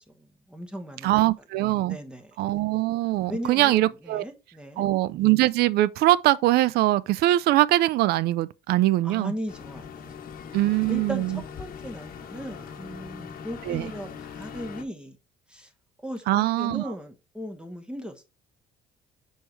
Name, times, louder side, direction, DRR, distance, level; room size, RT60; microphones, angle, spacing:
voice 1, 0.2-1.2 1.9-2.3 3.3-4.8 9.0-10.0 10.9-15.2 15.5-15.7 16.0-18.2, equal, 5° right, 1.2 m, -37 dB
voice 2, 1.0-2.0 2.4-4.3 4.8-9.3 10.5-11.4 13.7-13.9 16.3-16.8, right 16 dB, 70° right, 0.4 m, -22 dB
sound 1, 9.5-14.8, left 6 dB, 60° left, 1.2 m, -41 dB
6.3 x 4.6 x 3.2 m
cardioid pair, 110°, 17 cm